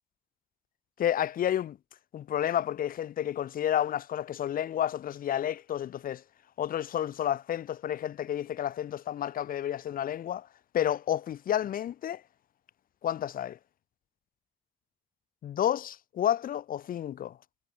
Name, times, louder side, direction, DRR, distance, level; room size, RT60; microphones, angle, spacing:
voice 1, 1.0-1.8 2.1-6.2 6.6-10.5 10.7-12.2 13.0-13.6 15.4-17.4, left 10 dB, 75° left, 0.8 m, -30 dB
supercardioid pair, 55°, 15 cm